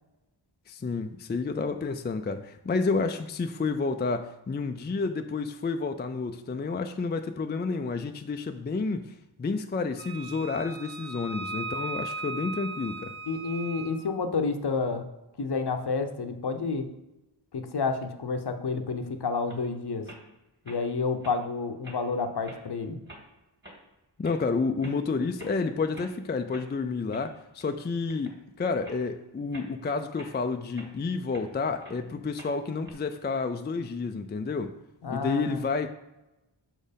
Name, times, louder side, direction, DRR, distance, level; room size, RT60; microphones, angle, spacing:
voice 1, 0.7-9.1 9.4-13.1 24.2-34.8 35.1-35.9, left 4 dB, 25° left, 0.4 m, -30 dB
Wind instrument woodwind instrument, 10.0-14.0, right 2 dB, 70° right, 1.1 m, -37 dB
voice 2, 13.3-15.1 15.4-16.9 17.5-20.1 20.7-23.0 35.0-35.6, left 4 dB, 55° left, 0.8 m, -30 dB
sound 1, 19.5-19.6 20.0-20.3 20.7-20.8 21.2-21.4 21.8-22.1 22.4-22.6 23.1-23.2 23.6-23.8 24.2-24.4 24.8-25.0 25.3-25.6 25.9-26.1 26.5-26.7 27.1-27.7 28.1-28.4 28.8-29.0 29.5-29.7 30.2-31.5 31.8-32.0 32.4-32.9, right 1 dB, 25° right, 2.0 m, -47 dB
6.1 x 4.3 x 5.2 m
wide cardioid pair, 75°, 47 cm